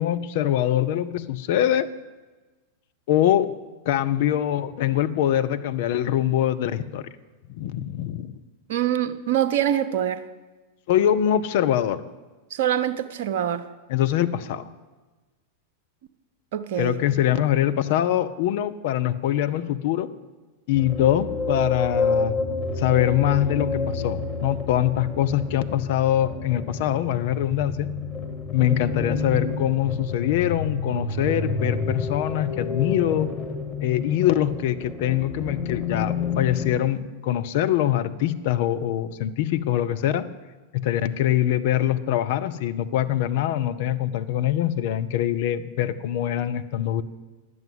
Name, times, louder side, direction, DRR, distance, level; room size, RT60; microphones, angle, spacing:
voice 1, 0.0-1.9 3.1-3.5 3.8-7.1 7.5-8.3 10.9-12.0 13.9-14.7 16.8-20.1 20.7-22.3 22.8-27.9 28.5-33.3 33.8-40.3 40.7-47.0, left 11 dB, 50° left, 10 dB, 0.6 m, -23 dB
voice 2, 8.7-10.2 12.5-13.7 16.5-17.0, right 10 dB, 55° right, 10 dB, 0.7 m, -24 dB
sound 1, 20.7-36.8, left 4 dB, 15° left, 1.9 m, -29 dB
10.5 x 7.9 x 7.8 m, 1.2 s
figure-of-eight pair, 90°, 0 cm